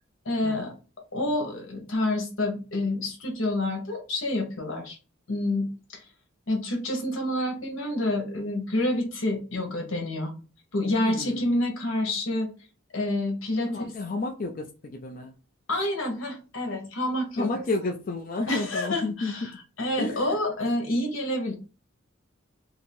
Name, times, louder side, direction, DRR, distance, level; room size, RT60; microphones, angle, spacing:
voice 1, 0.2-0.7 1.1-5.0 5.3-6.0 6.5-10.3 10.7-12.5 12.9-13.9 15.7-17.5 18.5-19.5 19.8-21.5, left 1 dB, 80° left, 3 dB, 1.2 m, -28 dB
voice 2, 11.0-11.5 13.7-15.3 17.4-19.5 20.0-20.2, left 2 dB, 45° left, 2 dB, 0.4 m, -31 dB
2.8 x 2.7 x 4.3 m, 0.33 s
head